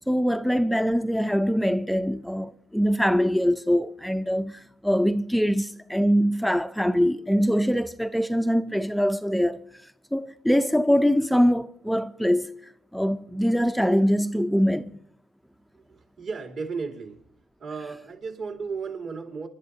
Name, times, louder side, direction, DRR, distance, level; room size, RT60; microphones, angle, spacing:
voice 1, 0.1-9.6 10.1-12.6 12.9-14.9, equal, ahead, 0.5 m, -23 dB
voice 2, 15.7-17.2 17.6-19.5, right 5 dB, 65° right, 3.1 m, -34 dB
28.0 x 11.0 x 2.7 m
cardioid pair, 105°, 0 cm